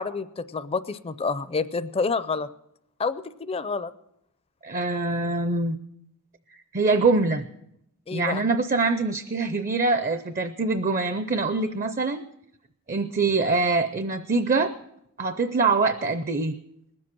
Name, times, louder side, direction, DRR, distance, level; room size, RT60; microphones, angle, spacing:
voice 1, 0.0-2.5 3.0-3.9 8.1-8.4, left 4 dB, 25° left, 13 dB, 0.4 m, -28 dB
voice 2, 4.6-5.8 6.7-7.5 8.1-12.2 12.9-14.7 15.2-16.6, right 3 dB, 40° right, 11 dB, 0.5 m, -24 dB
20.0 x 7.7 x 6.0 m, 0.76 s
head